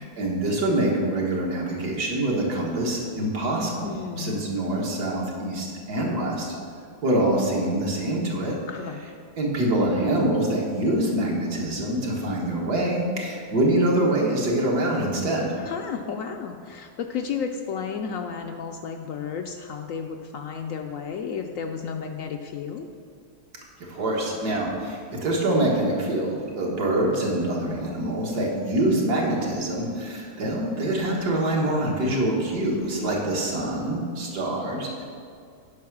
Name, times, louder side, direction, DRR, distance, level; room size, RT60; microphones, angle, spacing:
voice 1, 0.0-6.5 7.0-8.6 9.4-15.5 23.9-35.0, right 1 dB, 70° right, -2 dB, 2.1 m, -25 dB
voice 2, 3.8-4.4 8.7-9.0 15.6-22.9 32.7-33.3, left 6 dB, 70° left, 4 dB, 0.8 m, -33 dB
9.4 x 5.7 x 6.0 m, 2.2 s
omnidirectional pair, 1.7 m